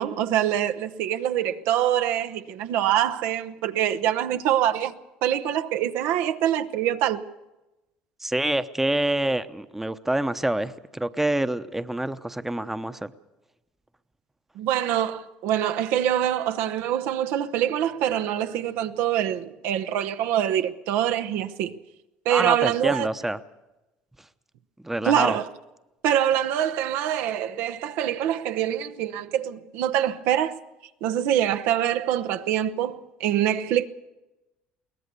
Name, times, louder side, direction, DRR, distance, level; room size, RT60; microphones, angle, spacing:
voice 1, 0.0-5.0 5.2-7.2 14.6-21.8 22.2-23.1 25.0-25.4 26.0-30.6 31.0-33.9, right 11 dB, 70° right, 0.8 m, -25 dB
voice 2, 8.2-13.1 22.3-23.4 24.8-25.4, right 1 dB, 5° right, 0.9 m, -26 dB
22.5 x 18.5 x 6.8 m
hypercardioid pair, 75°, 4 cm